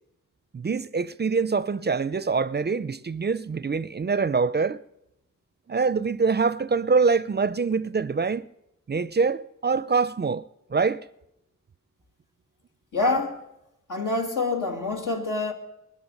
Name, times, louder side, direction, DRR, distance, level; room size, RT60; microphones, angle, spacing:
voice 1, 0.5-4.8 5.7-8.5 8.9-10.4 10.7-11.0, right 4 dB, 35° right, 0.4 m, -24 dB
voice 2, 12.9-13.4 13.9-15.5, left 3 dB, 80° left, 2.2 m, -26 dB
20.5 x 12.0 x 5.4 m
cardioid pair, 45°, 31 cm